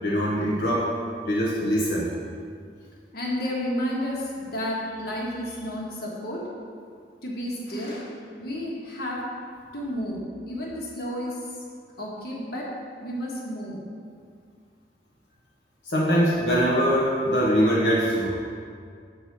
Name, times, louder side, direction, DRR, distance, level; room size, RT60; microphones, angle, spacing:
voice 1, 0.0-0.9 1.3-2.1 15.9-18.3, equal, 85° left, -5 dB, 1.0 m, -22 dB
voice 2, 3.1-6.5 7.2-9.2 9.7-11.3 12.0-12.7 13.0-13.8, equal, 60° left, -4 dB, 1.5 m, -31 dB
7.6 x 4.3 x 6.0 m, 2.2 s
head